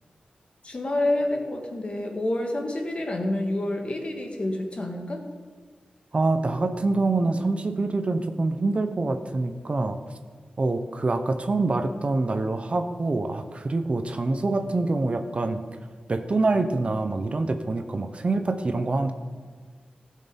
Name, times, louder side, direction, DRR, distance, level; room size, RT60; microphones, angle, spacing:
voice 1, 0.6-5.2, left 1 dB, 40° left, 3 dB, 1.7 m, -28 dB
voice 2, 6.1-10.0 10.6-15.6 16.1-19.1, right 3 dB, 45° right, 8 dB, 0.8 m, -25 dB
16.0 x 6.5 x 5.4 m, 1.5 s
wide cardioid pair, 90°, 3 cm